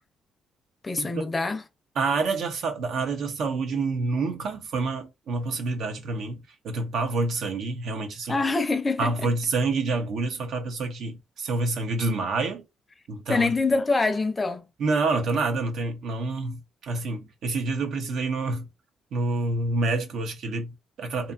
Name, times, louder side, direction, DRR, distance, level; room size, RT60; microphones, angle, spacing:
voice 1, 0.8-1.6 8.3-9.3 13.3-14.6, left 3 dB, 25° left, 0.5 m, -25 dB
voice 2, 2.0-8.4 9.0-12.7 13.1-13.5 14.8-18.7 19.1-21.3, right 3 dB, 70° right, 0.7 m, -28 dB
2.7 x 2.3 x 2.3 m
cardioid pair, 90°, 0 cm